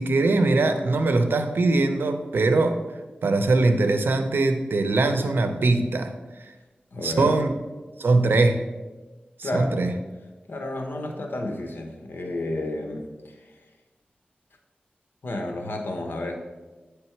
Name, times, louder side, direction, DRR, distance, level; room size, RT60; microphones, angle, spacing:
voice 1, 0.0-2.8 3.2-6.1 6.4-6.5 7.0-7.5 8.0-8.6 9.4-9.9, right 2 dB, 90° right, 8 dB, 0.6 m, -21 dB
voice 2, 6.9-7.4 9.4-9.8 10.5-13.5 15.2-16.4, left 1 dB, 80° left, 3 dB, 0.9 m, -31 dB
8.9 x 3.4 x 4.5 m, 1.2 s
wide cardioid pair, 65°, 4 cm